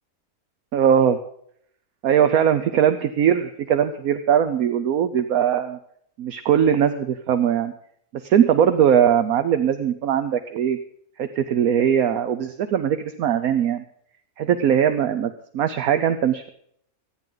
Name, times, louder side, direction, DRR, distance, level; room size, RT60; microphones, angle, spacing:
voice 1, 0.7-1.2 2.0-5.8 6.2-7.7 8.1-10.8 11.2-13.8 14.4-16.5, right 8 dB, 75° right, 8 dB, 1.2 m, -20 dB
24.0 x 9.2 x 3.9 m, 0.68 s
omnidirectional pair, 1.6 m